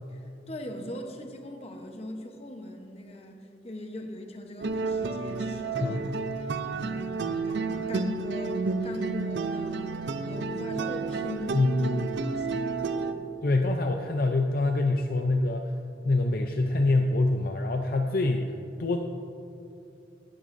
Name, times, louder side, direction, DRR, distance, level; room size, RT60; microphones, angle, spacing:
voice 1, 0.1-6.0 6.4-10.0 10.2-12.9, left 1 dB, 35° left, 4 dB, 0.9 m, -40 dB
sound 1, 4.6-13.1, right 4 dB, 70° right, 0.5 m, -31 dB
voice 2, 5.8-6.1 11.5-12.1 13.4-15.7 16.0-18.5 18.8-19.0, left 2 dB, 55° left, 4 dB, 0.5 m, -25 dB
16.5 x 12.5 x 2.6 m, 2.7 s
head